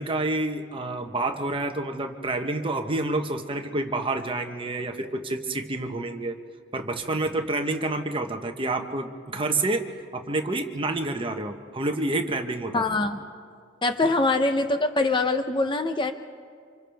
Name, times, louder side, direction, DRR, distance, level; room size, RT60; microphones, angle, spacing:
voice 1, 0.0-6.4 6.7-12.8 14.0-14.1, right 2 dB, 25° right, 5 dB, 1.1 m, -28 dB
voice 2, 12.7-13.2 13.8-16.1, left 2 dB, 25° left, 7 dB, 0.7 m, -23 dB
28.5 x 26.5 x 3.5 m, 2.1 s
head